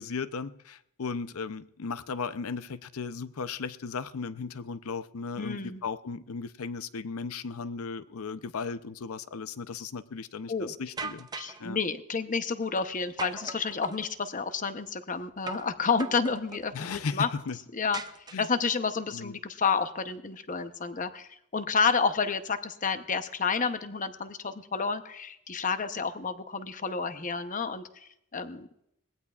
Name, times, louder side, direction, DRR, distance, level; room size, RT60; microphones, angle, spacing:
voice 1, 0.0-11.3 11.6-11.8 16.7-17.6 18.3-18.5 19.1-19.3, left 5 dB, 80° left, 14 dB, 0.6 m, -36 dB
voice 2, 5.4-5.8 10.5-10.7 11.4-17.3 17.7-18.0 18.4-28.7, left 5 dB, 35° left, 9 dB, 0.8 m, -30 dB
sound 1, 11.0-11.6 13.2-14.1 15.5-15.7 16.0-16.7 17.9-18.7, right 3 dB, 20° right, 0.5 m, -39 dB
21.5 x 18.0 x 2.4 m, 0.76 s
head